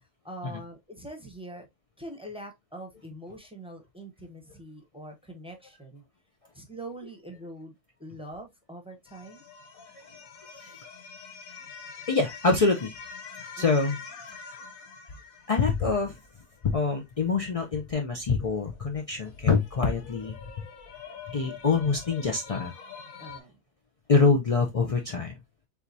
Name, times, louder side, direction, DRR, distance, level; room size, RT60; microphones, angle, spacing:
voice 1, 0.2-1.7 2.0-6.0 6.5-9.4 13.6-13.9 23.2-23.6, right 1 dB, 5° right, 0.7 m, -43 dB
sound 1, 9.1-16.9 19.4-23.4, left 6 dB, 80° left, 1.3 m, -45 dB
voice 2, 12.1-12.9 13.6-14.0 15.5-16.2 16.6-20.7 21.3-22.7 24.1-25.3, left 4 dB, 65° left, 0.3 m, -25 dB
4.6 x 3.5 x 2.6 m
omnidirectional pair, 1.4 m